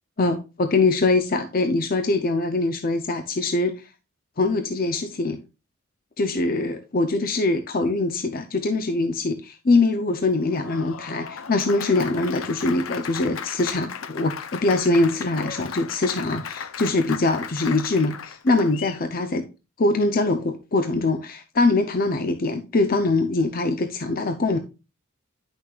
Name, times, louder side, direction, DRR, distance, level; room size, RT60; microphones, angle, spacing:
voice 1, 0.2-3.8 4.4-5.4 6.2-19.5 19.8-24.6, left 2 dB, 45° left, 0.7 m, -23 dB
Applause, 10.3-19.0, left 7 dB, 85° left, 0.6 m, -36 dB
10.0 x 6.2 x 2.4 m
head